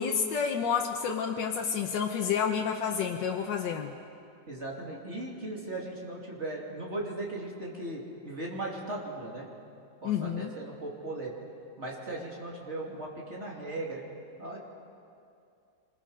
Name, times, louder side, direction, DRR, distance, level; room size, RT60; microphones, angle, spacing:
voice 1, 0.0-3.9 10.0-10.5, left 7 dB, 80° left, 2 dB, 1.6 m, -29 dB
voice 2, 4.5-9.5 10.0-11.3 11.8-14.0 14.4-14.6, right 2 dB, 40° right, -3 dB, 3.2 m, -37 dB
26.0 x 21.5 x 5.1 m, 2.5 s
omnidirectional pair, 1.9 m